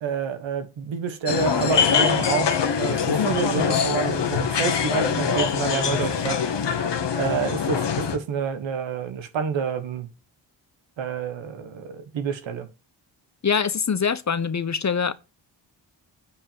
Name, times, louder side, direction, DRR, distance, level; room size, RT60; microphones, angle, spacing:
voice 1, 0.0-6.4 7.1-10.1 11.0-12.7, right 6 dB, 90° right, 1.4 m, -28 dB
sound 1, 1.3-8.2, left 6 dB, 70° left, 1.5 m, -23 dB
voice 2, 13.4-15.1, left 6 dB, 40° left, 0.9 m, -24 dB
8.6 x 5.0 x 7.2 m
cardioid pair, 50°, 44 cm